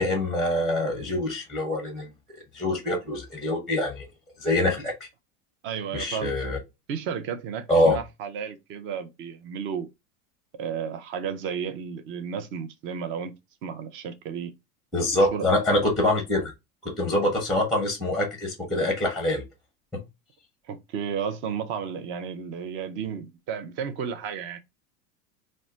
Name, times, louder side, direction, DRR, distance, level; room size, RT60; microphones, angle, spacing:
voice 1, 0.0-2.1 2.5-4.0 4.4-4.9 5.9-6.6 7.7-8.0 14.9-16.5 16.8-19.4 19.9-20.0, left 1 dB, ahead, 0.7 m, -25 dB
voice 2, 5.6-6.3 6.9-9.9 10.6-13.3 13.6-14.5 15.1-15.5 20.7-24.6, right 7 dB, 30° right, 0.3 m, -33 dB
2.1 x 2.1 x 3.6 m
hypercardioid pair, 95°, 48 cm